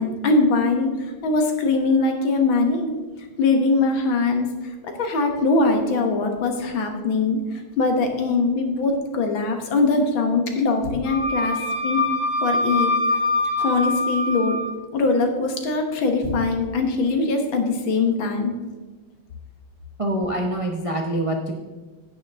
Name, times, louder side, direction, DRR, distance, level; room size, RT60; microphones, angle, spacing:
voice 1, 0.0-2.9 3.4-12.0 12.4-12.9 13.6-14.6 14.9-18.5, left 3 dB, 75° left, 4 dB, 2.1 m, -22 dB
Wind instrument woodwind instrument, 11.1-14.7, left 2 dB, 90° left, 3.1 m, -23 dB
voice 2, 20.0-21.5, right 1 dB, 55° right, 1 dB, 0.3 m, -25 dB
10.0 x 9.1 x 3.6 m, 1.3 s
omnidirectional pair, 2.2 m